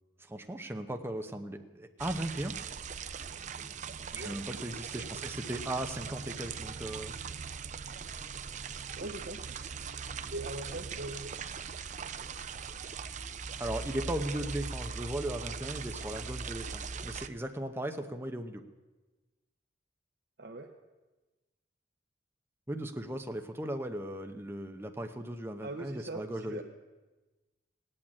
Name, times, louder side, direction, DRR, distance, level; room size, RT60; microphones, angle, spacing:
voice 1, 0.2-2.5 4.1-7.2 13.6-18.6 22.7-26.6, right 1 dB, 15° right, 5 dB, 0.8 m, -37 dB
sound 1, 2.0-17.3, right 5 dB, 40° right, 0.6 m, -40 dB
voice 2, 4.1-4.7 5.1-5.2 8.9-9.4 10.3-11.3 20.4-20.7 25.6-26.6, right 2 dB, 60° right, 3 dB, 1.0 m, -41 dB
17.5 x 8.8 x 8.7 m, 1.2 s
head